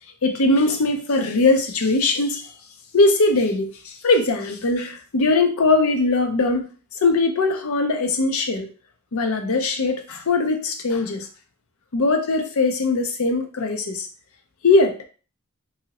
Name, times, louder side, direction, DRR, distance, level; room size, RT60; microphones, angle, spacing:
voice 1, 0.2-2.4 2.9-6.7 7.0-8.7 9.1-11.3 11.9-14.1 14.6-15.0, left 3 dB, 75° left, 0.6 m, -20 dB
2.8 x 2.7 x 2.8 m
head